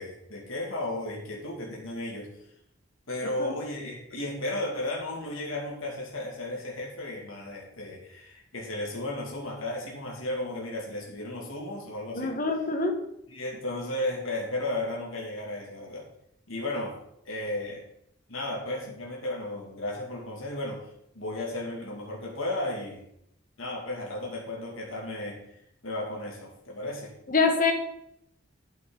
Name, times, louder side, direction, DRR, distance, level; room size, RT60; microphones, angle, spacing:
voice 1, 0.0-2.3 3.1-12.4 13.3-16.1 16.5-17.0 17.2-17.8 18.3-20.9 21.1-23.0 23.6-25.4 25.8-27.1, left 1 dB, 80° left, -2 dB, 2.2 m, -34 dB
voice 2, 12.1-13.0 27.3-27.7, left 4 dB, 40° left, 4 dB, 1.2 m, -25 dB
8.9 x 7.8 x 3.8 m, 0.77 s
head